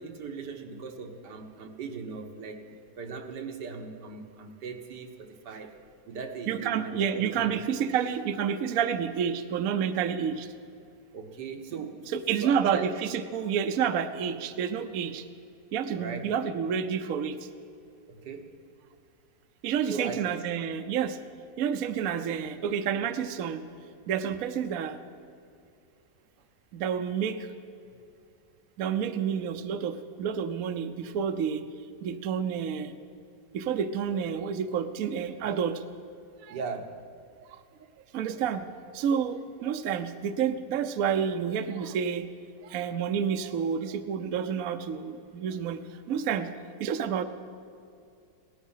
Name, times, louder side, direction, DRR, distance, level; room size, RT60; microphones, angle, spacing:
voice 1, 0.0-2.6 3.0-5.7 6.1-7.5 11.1-12.1 12.4-12.9 16.0-16.3 18.1-18.5 19.9-20.2 36.5-37.0, right 5 dB, 85° right, 4 dB, 1.8 m, -38 dB
voice 2, 6.5-10.5 12.1-15.3 15.7-17.5 19.6-21.2 21.6-23.6 24.1-25.0 26.7-27.5 28.8-31.6 32.0-32.9 33.5-35.8 36.4-36.6 37.5-37.6 38.1-38.7 38.9-42.3 42.6-46.5 46.8-47.2, right 7 dB, 65° right, 9 dB, 1.0 m, -29 dB
17.5 x 13.0 x 5.6 m, 2.5 s
omnidirectional pair, 1.8 m